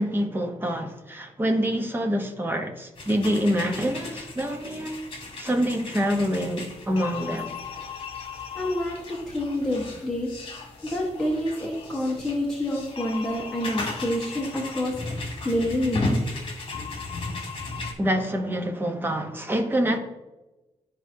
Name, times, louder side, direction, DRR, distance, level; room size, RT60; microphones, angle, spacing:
voice 1, 0.0-5.0 5.4-7.6 18.0-20.0, equal, 15° right, 1.0 m, -26 dB
sound 1, 3.0-17.9, left 3 dB, 45° left, 1.7 m, -35 dB
voice 2, 8.5-10.3 10.9-16.2, left 1 dB, 5° left, 1.4 m, -28 dB
12.5 x 5.0 x 2.8 m
wide cardioid pair, 165°, 12 cm